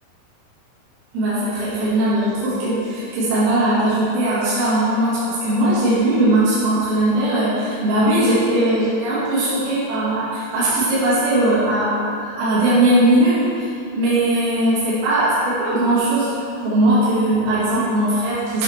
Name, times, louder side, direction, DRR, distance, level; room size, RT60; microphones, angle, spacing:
voice 1, 1.1-13.7 13.9-16.3 16.6-18.6, right 1 dB, 85° right, -11 dB, 4.6 m, -19 dB
9.2 x 7.2 x 3.2 m, 2.8 s
omnidirectional pair, 5.9 m